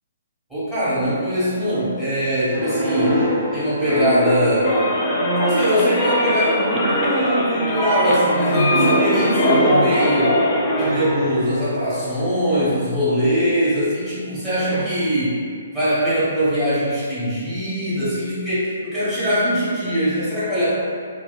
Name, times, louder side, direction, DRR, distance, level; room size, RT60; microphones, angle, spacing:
voice 1, 0.5-3.2 3.5-4.7 5.4-10.3 10.8-15.4 15.7-20.7, equal, 10° right, -14 dB, 1.3 m, -22 dB
sound 1, 2.5-5.9 6.6-7.1 8.5-12.6 14.7-14.8, equal, 35° right, 1.2 m, -24 dB
sound 2, 4.6-10.9, equal, 25° left, 0.4 m, -21 dB
2.6 x 2.3 x 2.3 m, 2.2 s
figure-of-eight pair, 130°, 0 cm